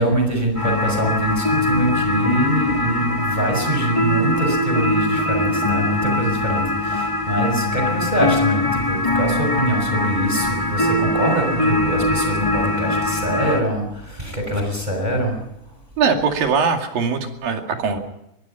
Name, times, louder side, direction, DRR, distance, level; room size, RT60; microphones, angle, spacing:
voice 1, 0.0-15.4, right 1 dB, 10° right, 3 dB, 5.7 m, -23 dB
sound 1, 0.5-13.6, left 1 dB, 55° left, 0.3 m, -22 dB
voice 2, 16.0-18.0, right 5 dB, 70° right, 4 dB, 4.2 m, -21 dB
24.0 x 22.0 x 5.7 m, 0.83 s
omnidirectional pair, 4.3 m